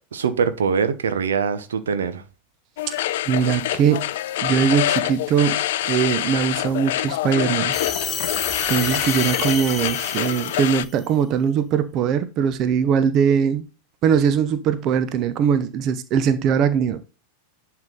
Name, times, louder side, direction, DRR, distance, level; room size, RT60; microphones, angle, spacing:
voice 1, 0.1-2.2, right 6 dB, 65° right, 0.9 m, -23 dB
sound 1, 2.8-10.9, left 13 dB, 55° left, 0.5 m, -26 dB
voice 2, 3.3-4.1 4.4-7.8 8.2-8.3 8.7-13.7 14.0-17.0, right 7 dB, 35° right, 0.9 m, -21 dB
sound 2, 7.7-11.0, left 5 dB, 15° left, 1.7 m, -30 dB
10.5 x 4.7 x 3.9 m
figure-of-eight pair, 90°, 0 cm